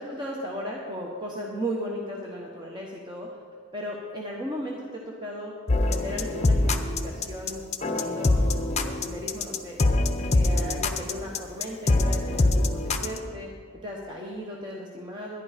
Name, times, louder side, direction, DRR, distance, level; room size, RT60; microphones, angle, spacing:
voice 1, 0.0-3.3 3.7-5.5 5.9-8.5 8.8-9.8 10.3-13.5 13.8-15.4, equal, 20° right, -2 dB, 1.0 m, -36 dB
sound 1, 5.7-13.2, left 2 dB, 30° left, 0.7 m, -24 dB
11.5 x 11.0 x 5.0 m, 2.2 s
head